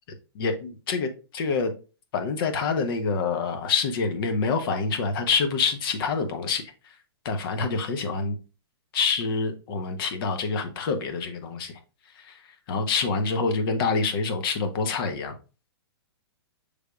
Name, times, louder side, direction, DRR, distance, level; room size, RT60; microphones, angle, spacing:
voice 1, 0.3-1.7 2.1-6.6 7.2-8.4 8.9-11.8 12.2-15.4, left 4 dB, 55° left, 7 dB, 0.9 m, -26 dB
6.3 x 3.4 x 2.3 m, 0.34 s
hypercardioid pair, 140°, 14 cm